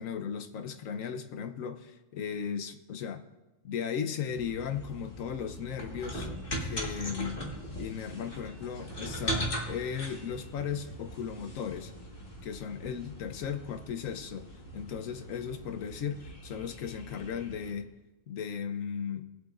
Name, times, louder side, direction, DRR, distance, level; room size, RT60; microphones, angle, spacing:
voice 1, 0.0-3.2 3.6-6.3 6.6-7.4 7.8-11.9 12.4-14.5 14.7-17.9 18.3-19.3, left 7 dB, 85° left, 9 dB, 1.2 m, -36 dB
sound 1, 4.3-17.7, equal, 45° left, 1.9 m, -40 dB
21.0 x 7.7 x 2.5 m, 1.1 s
omnidirectional pair, 1.3 m